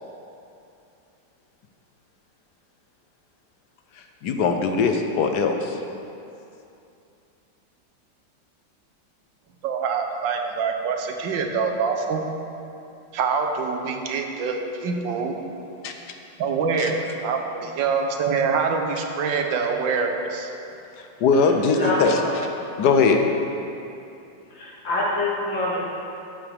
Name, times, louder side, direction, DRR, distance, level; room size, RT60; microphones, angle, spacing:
voice 1, 3.9-5.8 15.8-15.9 16.8-16.9 21.0-22.2 22.8-23.2, left 5 dB, 70° left, 4 dB, 1.2 m, -21 dB
voice 2, 9.6-12.2 13.1-15.4 16.4-20.5, right 5 dB, 80° right, 4 dB, 1.5 m, -25 dB
voice 3, 21.7-22.4 24.5-25.8, left 1 dB, 85° left, -5 dB, 2.6 m, -25 dB
14.0 x 7.2 x 3.4 m, 2.7 s
omnidirectional pair, 2.1 m